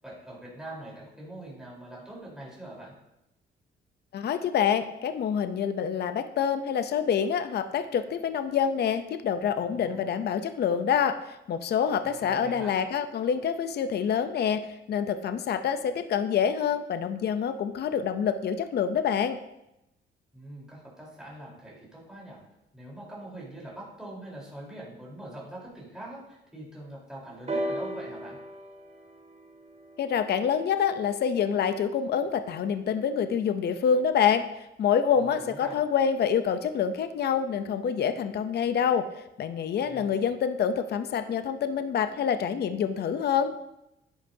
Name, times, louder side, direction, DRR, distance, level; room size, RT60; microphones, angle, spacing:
voice 1, 0.0-2.9 9.6-10.1 12.0-12.7 20.3-22.4 22.7-28.4 35.1-35.8 39.8-40.3, right 1 dB, 5° right, -6 dB, 3.9 m, -43 dB
voice 2, 4.1-19.4 30.0-34.4 34.8-39.1 39.4-43.5, left 7 dB, 55° left, 10 dB, 0.6 m, -26 dB
sound 1, 27.5-31.3 32.2-32.3, right 1 dB, 30° right, 1.3 m, -37 dB
10.5 x 10.0 x 2.8 m, 0.88 s
cardioid pair, 90°, 20 cm